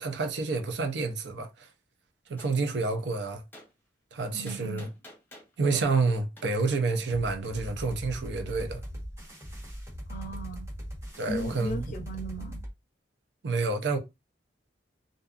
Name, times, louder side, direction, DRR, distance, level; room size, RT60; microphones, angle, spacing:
voice 1, 0.0-1.7 2.3-3.4 4.1-4.9 5.6-8.8 11.2-11.9 13.4-14.0, right 3 dB, 65° right, 0.5 m, -29 dB
Gunshot gunfire, 2.4-2.6 3.5-3.7 4.5-5.5 6.4-6.5, left 1 dB, 10° left, 0.8 m, -49 dB
voice 2, 4.3-4.9 10.1-10.7 11.3-12.6, right 1 dB, 45° left, 0.5 m, -37 dB
sound 1, 7.1-12.7, equal, 15° right, 1.0 m, -40 dB
2.6 x 2.4 x 2.3 m
head